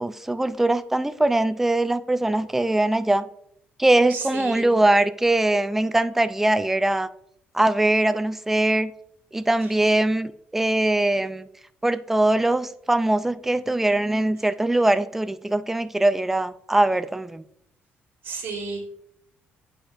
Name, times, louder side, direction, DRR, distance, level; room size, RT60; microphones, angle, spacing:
voice 1, 0.0-3.3 3.8-7.1 7.5-8.9 9.3-11.5 11.8-17.4, right 1 dB, 5° right, 0.3 m, -22 dB
voice 2, 4.1-4.8 9.6-10.0 18.2-18.8, right 4 dB, 85° right, 1.7 m, -33 dB
10.0 x 4.2 x 2.4 m
cardioid pair, 135°, 4 cm